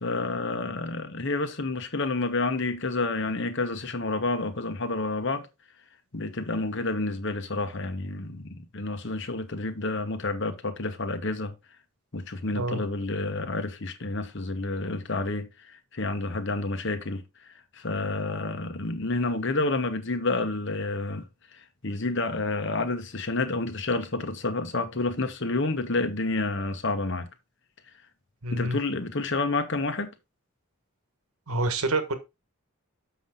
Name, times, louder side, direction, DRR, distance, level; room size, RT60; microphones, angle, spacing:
voice 1, 0.0-5.5 6.1-11.5 12.1-15.5 15.9-17.2 17.7-21.2 21.5-27.3 28.5-30.1, left 2 dB, 55° left, 1.2 m, -29 dB
voice 2, 28.4-28.8 31.5-32.1, right 2 dB, 90° right, 1.4 m, -27 dB
7.1 x 5.8 x 3.8 m
head